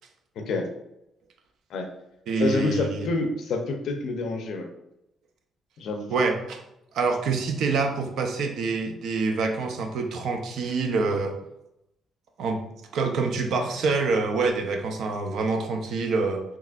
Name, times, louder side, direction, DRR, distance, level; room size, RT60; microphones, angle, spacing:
voice 1, 0.4-0.7 1.7-1.9 2.4-4.7 5.8-6.1, left 3 dB, 75° left, 5 dB, 0.5 m, -28 dB
voice 2, 2.3-3.1 6.1-6.6 6.9-11.4 12.4-12.6 12.9-16.4, right 4 dB, 75° right, 4 dB, 0.5 m, -26 dB
3.7 x 3.0 x 2.4 m, 0.85 s
cardioid pair, 90°, 0 cm